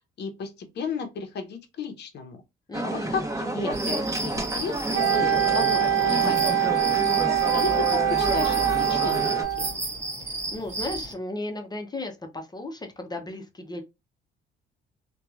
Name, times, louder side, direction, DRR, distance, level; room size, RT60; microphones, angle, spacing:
voice 1, 0.2-2.4 2.8-7.0 7.5-9.9, left 5 dB, 60° left, 0.7 m, -34 dB
voice 2, 2.7-3.2 10.2-13.8, left 2 dB, 20° left, 0.7 m, -35 dB
sound 1, 2.7-9.4, right 1 dB, 15° right, 1.0 m, -30 dB
sound 2, 3.7-11.1, right 2 dB, 35° right, 1.3 m, -33 dB
Wind instrument woodwind instrument, 4.9-9.7, right 10 dB, 80° right, 0.7 m, -24 dB
2.9 x 2.2 x 2.4 m
cardioid pair, 90°, 20 cm